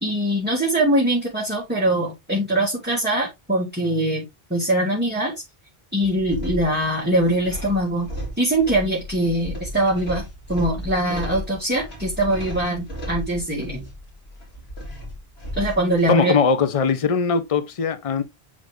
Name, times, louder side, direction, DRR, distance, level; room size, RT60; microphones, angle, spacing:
voice 1, 0.0-5.3 5.9-8.1 8.4-13.9 15.6-16.3, right 1 dB, 10° right, 2.1 m, -22 dB
sound 1, 6.0-16.1, left 1 dB, 80° left, 2.2 m, -35 dB
voice 2, 16.1-18.2, left 5 dB, 35° left, 0.7 m, -20 dB
9.3 x 3.3 x 3.5 m
omnidirectional pair, 1.0 m